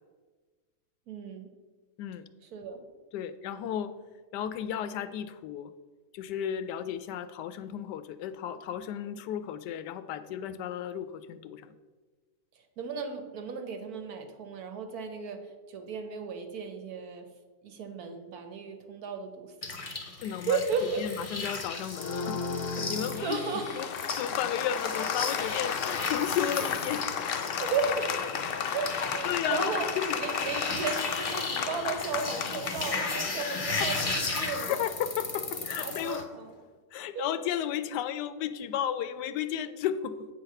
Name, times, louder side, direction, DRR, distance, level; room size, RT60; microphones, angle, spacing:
voice 1, 1.1-1.5 2.5-2.8 12.8-17.3 17.6-19.5 19.8-20.1 20.5-21.0 23.1-23.6 27.6-28.1 28.7-29.9 30.2-34.9 35.8-36.6 37.1-37.3, right 5 dB, 65° right, 6 dB, 1.3 m, -34 dB
voice 2, 3.1-3.9 4.3-5.7 6.1-11.7 20.2-20.6 21.0-22.4 22.8-23.4 23.7-23.9 24.2-27.0 29.2-30.2 33.8-33.9 34.6-36.2 36.9-40.3, left 10 dB, 85° left, 12 dB, 1.2 m, -33 dB
sound 1, 19.6-36.2, left 3 dB, 35° left, 0.5 m, -36 dB
Applause, 21.9-36.3, left 7 dB, 70° left, 0.7 m, -34 dB
8.2 x 4.0 x 6.6 m, 1.4 s
omnidirectional pair, 1.8 m